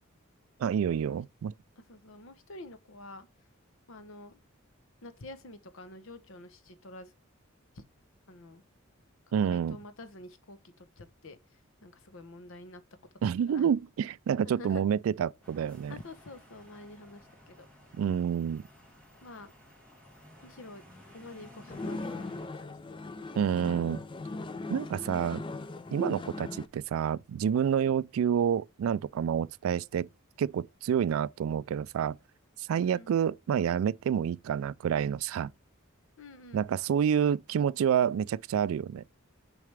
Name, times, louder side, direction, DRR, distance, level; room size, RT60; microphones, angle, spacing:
voice 1, 0.6-1.5 9.3-9.8 13.2-16.0 17.9-18.6 23.4-24.0 24.7-25.4 25.9-30.1 30.4-32.2 32.6-35.5 36.5-39.0, right 8 dB, 75° right, 0.3 m, -28 dB
voice 2, 1.8-3.3 3.9-4.4 5.0-7.1 7.7-7.8 8.3-8.6 9.4-12.8 13.5-13.7 14.4-14.8 15.9-17.7 19.2-19.5 20.4-20.8 21.1-22.8 23.0-23.3 32.8-33.1 36.2-36.6, left 2 dB, 70° left, 0.9 m, -48 dB
sound 1, 15.4-22.5, left 1 dB, 5° left, 2.5 m, -54 dB
sound 2, 21.7-26.7, left 2 dB, 25° left, 0.4 m, -39 dB
6.5 x 4.8 x 3.4 m
head